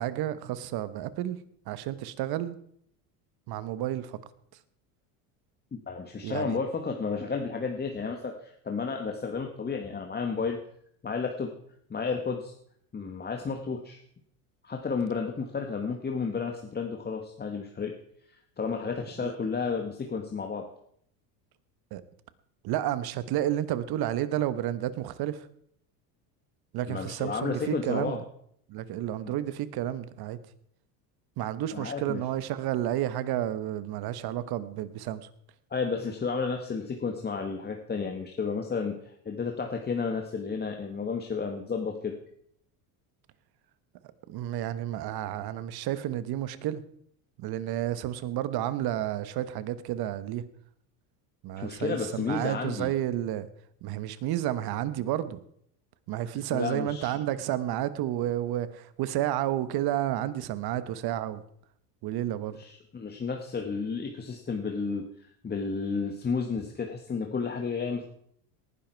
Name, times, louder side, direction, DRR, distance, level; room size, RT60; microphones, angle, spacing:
voice 1, 0.0-1.4 1.7-2.6 3.5-4.2 6.2-6.6 19.2-19.3 21.9-22.0 22.6-25.5 26.7-28.2 28.7-30.4 31.4-35.3 44.3-46.8 47.4-50.4 51.4-53.5 53.8-55.4 56.1-61.4 62.0-62.6, right 12 dB, 55° right, 14 dB, 1.3 m, -31 dB
voice 2, 5.7-10.6 11.0-11.5 11.9-12.5 12.9-14.0 14.6-17.9 18.6-20.7 26.9-28.2 29.2-29.3 31.7-32.2 35.7-42.2 51.6-52.9 56.5-57.2 62.6-65.0 65.4-68.0, left 5 dB, 20° left, 3 dB, 1.6 m, -32 dB
19.0 x 10.5 x 4.6 m, 0.68 s
supercardioid pair, 110°, 46 cm